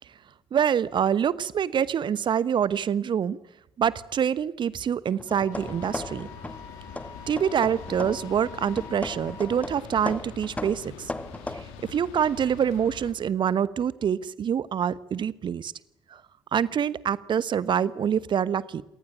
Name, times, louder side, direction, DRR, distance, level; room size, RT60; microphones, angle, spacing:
voice 1, 0.5-3.4 3.8-6.3 7.3-11.1 11.5-15.7 16.1-16.2 16.5-18.8, right 8 dB, 40° right, 19 dB, 1.1 m, -26 dB
sound 1, 5.1-6.7 7.0-8.3 8.8-11.6, left 2 dB, 10° left, 1.3 m, -37 dB
Wind instrument woodwind instrument, 5.3-9.7, left 5 dB, 30° left, 4.5 m, -46 dB
sound 2, 5.5-13.1, left 7 dB, 65° left, 2.7 m, -44 dB
27.0 x 19.0 x 8.9 m, 0.83 s
figure-of-eight pair, 45°, 12 cm